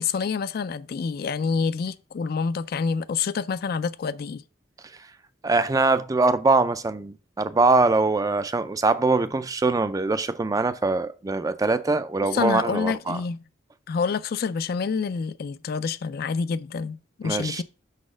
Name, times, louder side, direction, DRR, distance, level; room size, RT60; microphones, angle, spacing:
voice 1, 0.0-4.4 12.3-13.4 13.9-17.6, left 5 dB, 50° left, 0.3 m, -27 dB
voice 2, 5.4-13.2 17.2-17.6, right 3 dB, 20° right, 0.4 m, -23 dB
5.9 x 4.1 x 6.1 m
head